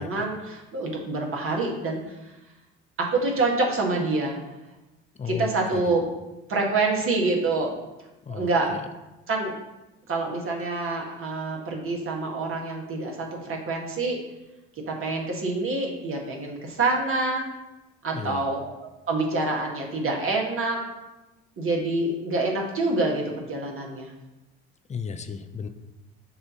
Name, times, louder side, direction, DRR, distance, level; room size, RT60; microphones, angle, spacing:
voice 1, 0.0-2.2 3.0-4.4 5.3-6.0 6.5-7.7 8.3-8.7 9.3-9.5 10.1-14.2 14.9-17.4 18.0-20.8 21.6-24.1, right 3 dB, 40° right, 0 dB, 1.7 m, -26 dB
voice 2, 5.2-5.8 8.2-8.8 18.1-18.4 24.9-25.7, left 6 dB, 20° left, 8 dB, 0.6 m, -34 dB
6.6 x 2.8 x 5.6 m, 1.0 s
hypercardioid pair, 65°, 32 cm